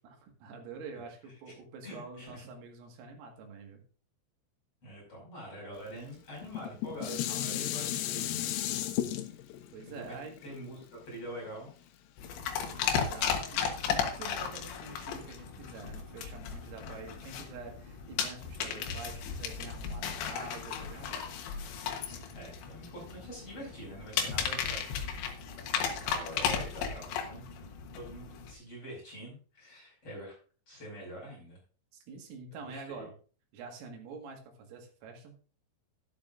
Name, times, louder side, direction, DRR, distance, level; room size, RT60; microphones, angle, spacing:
voice 1, 0.0-3.8 9.7-10.4 12.7-21.3 31.9-33.1 33.5-34.4 34.7-35.3, right 4 dB, 90° right, 2 dB, 4.5 m, -46 dB
voice 2, 1.8-2.5 4.8-8.4 9.8-10.2 10.4-10.8 11.0-11.7 22.3-24.8 25.7-27.4 27.9-30.4 30.7-31.6 32.6-33.0, equal, 30° left, -3 dB, 6.5 m, -45 dB
Dishes pots and pans, 6.4-11.7 12.2-12.3, left 12 dB, 85° left, 3.5 m, -35 dB
sound 1, 12.2-28.5, left 7 dB, 70° left, 3.3 m, -35 dB
12.0 x 11.5 x 2.6 m, 0.39 s
omnidirectional pair, 5.8 m